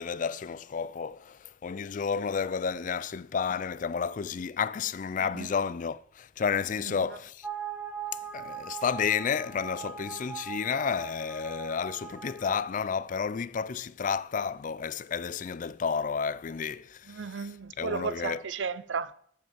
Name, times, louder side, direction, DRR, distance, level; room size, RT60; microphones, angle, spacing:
voice 1, 0.0-7.5 8.3-18.4, left 6 dB, 45° left, 0.4 m, -31 dB
sound 1, 7.4-12.6, right 7 dB, 5° right, 0.8 m, -40 dB
voice 2, 17.1-19.1, right 5 dB, 90° right, 0.6 m, -34 dB
12.0 x 5.4 x 7.3 m
head